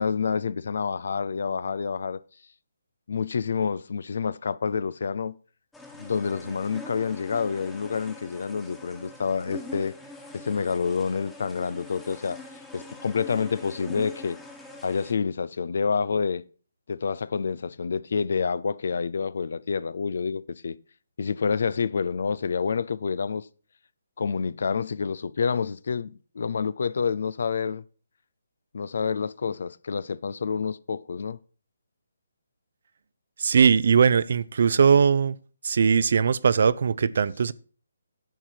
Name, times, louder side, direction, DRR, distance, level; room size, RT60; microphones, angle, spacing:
voice 1, 0.0-2.2 3.1-5.4 6.0-10.0 10.3-12.4 12.7-14.4 14.8-16.4 16.9-20.8 21.2-23.5 24.2-27.8 28.7-31.4, left 5 dB, 65° left, 0.5 m, -28 dB
sound 1, 5.7-15.1, left 1 dB, 5° left, 1.4 m, -44 dB
voice 2, 33.4-35.3 35.6-37.5, right 6 dB, 55° right, 0.5 m, -20 dB
10.5 x 7.4 x 4.5 m
hypercardioid pair, 160°, 0 cm